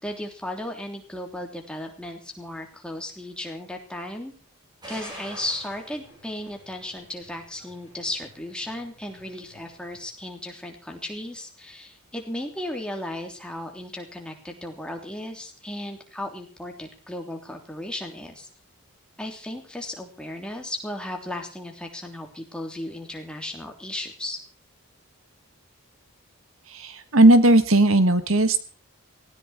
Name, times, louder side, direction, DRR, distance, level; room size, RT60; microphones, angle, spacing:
voice 1, 0.0-4.3 4.9-18.5 19.2-24.4, left 1 dB, 5° left, 2 dB, 3.2 m, -35 dB
sound 1, 4.8-10.0, equal, 20° right, 7.8 m, -47 dB
voice 2, 26.7-28.6, right 1 dB, 65° right, 12 dB, 1.6 m, -17 dB
18.5 x 17.5 x 4.4 m, 0.38 s
head